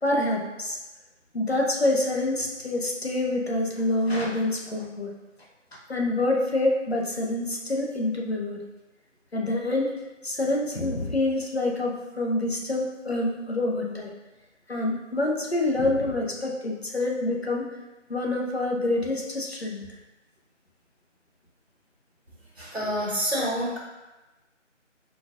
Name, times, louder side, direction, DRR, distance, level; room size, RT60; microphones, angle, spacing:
voice 1, 0.0-0.8 1.3-5.1 5.7-8.6 9.3-9.9 10.2-14.1 14.7-17.7 18.1-19.8, left 2 dB, 55° left, 0 dB, 0.8 m, -26 dB
voice 2, 22.6-23.8, equal, 55° right, -3 dB, 1.5 m, -27 dB
4.9 x 4.0 x 2.4 m, 1.1 s
figure-of-eight pair, 175°, 37 cm